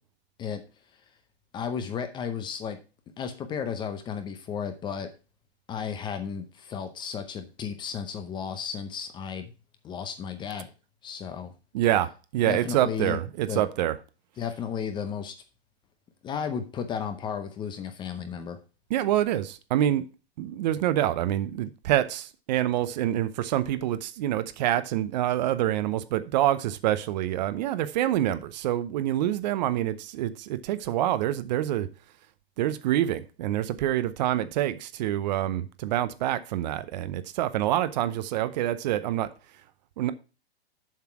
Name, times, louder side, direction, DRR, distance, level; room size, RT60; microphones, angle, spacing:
voice 1, 1.5-2.8 3.2-5.1 5.7-9.5 9.8-10.7 11.0-11.5 12.5-13.2 13.5-13.6 14.4-15.4 16.2-18.6, left 7 dB, 15° left, 0.6 m, -33 dB
voice 2, 11.7-14.0 18.9-20.1 20.4-31.9 32.6-39.3 40.0-40.1, right 12 dB, 40° right, 0.7 m, -26 dB
7.4 x 5.7 x 5.9 m
hypercardioid pair, 145°, 32 cm